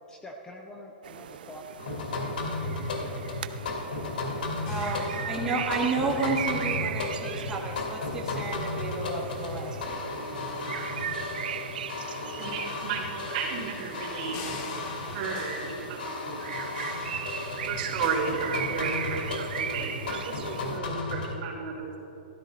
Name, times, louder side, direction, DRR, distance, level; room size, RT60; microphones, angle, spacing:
voice 1, 0.1-1.7 2.1-3.2 6.0-6.3, left 1 dB, 10° left, 2 dB, 0.8 m, -46 dB
sound 1, 1.0-20.8, right 9 dB, 70° right, 0.6 m, -38 dB
sound 2, 1.8-21.3, left 3 dB, 70° left, 2.1 m, -34 dB
voice 2, 4.6-10.0, right 3 dB, 10° right, -3 dB, 1.6 m, -31 dB
sound 3, 4.7-19.1, left 4 dB, 45° left, 1.7 m, -50 dB
voice 3, 12.4-14.4 15.1-16.6 17.7-22.0, right 5 dB, 45° right, -3 dB, 2.8 m, -33 dB
13.0 x 12.5 x 4.2 m, 2.9 s
hypercardioid pair, 135°, 5 cm